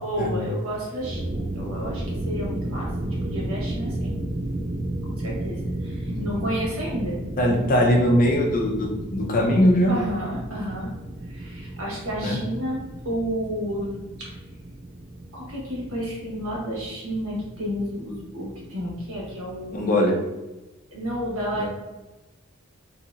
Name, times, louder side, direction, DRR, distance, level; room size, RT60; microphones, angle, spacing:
voice 1, 0.0-4.1 5.0-7.2 9.9-10.9 11.2-14.4 15.3-19.8 20.9-21.7, equal, 80° right, -4 dB, 1.2 m, -31 dB
sound 1, 0.9-19.7, right 1 dB, 35° right, 0.4 m, -33 dB
voice 2, 6.1-6.4 7.4-9.9 12.1-12.4 19.7-20.2 21.6-21.7, left 1 dB, 40° left, 0 dB, 0.5 m, -21 dB
2.8 x 2.7 x 2.5 m, 1.1 s
head